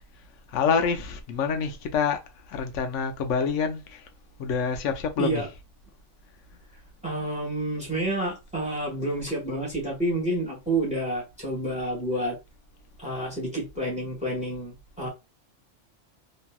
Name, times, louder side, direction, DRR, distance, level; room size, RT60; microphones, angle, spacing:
voice 1, 0.5-4.1 4.4-5.4, left 6 dB, 80° left, 1.0 m, -27 dB
voice 2, 7.0-12.4 13.0-15.1, right 1 dB, 5° right, 1.3 m, -29 dB
3.0 x 2.6 x 2.3 m
omnidirectional pair, 1.3 m